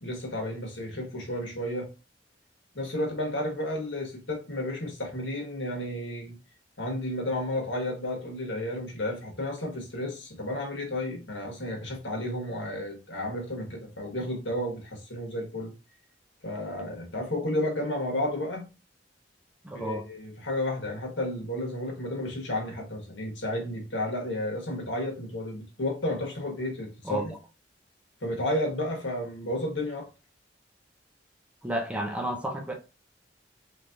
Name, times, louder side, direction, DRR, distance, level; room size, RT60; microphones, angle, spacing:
voice 1, 0.0-1.9 2.7-6.4 6.8-15.7 16.4-18.7 19.7-27.3 28.2-30.1, left 1 dB, 75° left, 1.4 m, -32 dB
voice 2, 19.6-20.1 27.0-27.2 31.6-32.7, right 1 dB, 5° right, 0.6 m, -31 dB
3.4 x 3.2 x 2.6 m
head